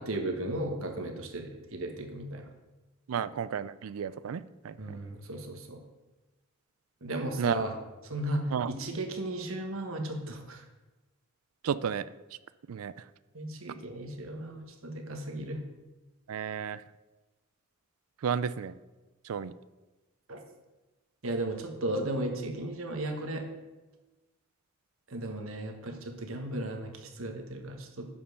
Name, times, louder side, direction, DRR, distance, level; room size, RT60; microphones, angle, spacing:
voice 1, 0.0-2.5 4.8-5.8 7.0-7.7 8.0-10.6 13.3-15.6 20.3-20.4 21.2-23.4 25.1-28.1, right 1 dB, 70° right, 3 dB, 1.3 m, -35 dB
voice 2, 3.1-5.0 7.4-7.6 8.5-8.7 11.6-12.1 12.7-12.9 16.3-16.8 18.2-18.8 19.2-19.5, right 7 dB, 90° right, 16 dB, 0.4 m, -32 dB
7.1 x 5.4 x 6.5 m, 1.1 s
head